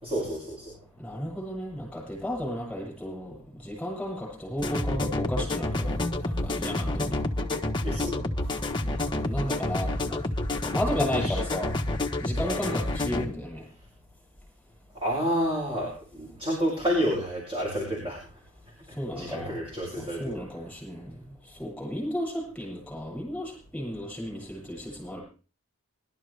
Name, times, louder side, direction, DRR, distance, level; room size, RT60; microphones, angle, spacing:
voice 1, 0.0-0.8 7.8-8.5 11.2-11.3 12.4-12.6 14.9-18.2 18.9-20.4, equal, 25° right, -4 dB, 6.4 m, -30 dB
voice 2, 1.0-7.2 8.8-10.2 10.6-11.9 12.2-13.7 18.9-19.6 20.0-25.2, equal, 5° left, -4 dB, 7.4 m, -34 dB
sound 1, 4.6-13.3, left 2 dB, 20° left, 1.3 m, -29 dB
22.5 x 12.5 x 3.4 m, 0.36 s
head